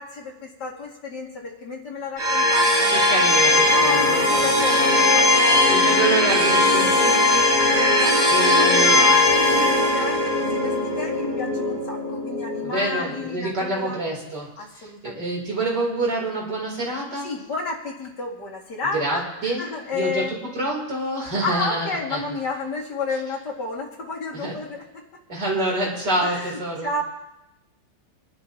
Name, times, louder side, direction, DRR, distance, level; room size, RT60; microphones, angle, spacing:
voice 1, 0.0-5.8 7.6-14.0 14.6-15.3 17.2-20.3 21.4-25.0 26.2-27.0, left 3 dB, 75° left, -2 dB, 2.8 m, -31 dB
sound 1, 2.2-13.2, left 2 dB, 35° right, 4.3 m, -19 dB
voice 2, 2.9-4.5 5.7-7.5 8.3-9.0 12.6-14.5 14.8-17.3 18.9-19.7 19.9-22.2 24.3-24.5 25.3-26.9, right 2 dB, 75° right, -3 dB, 4.1 m, -27 dB
26.0 x 11.0 x 2.9 m, 0.95 s
omnidirectional pair, 1.8 m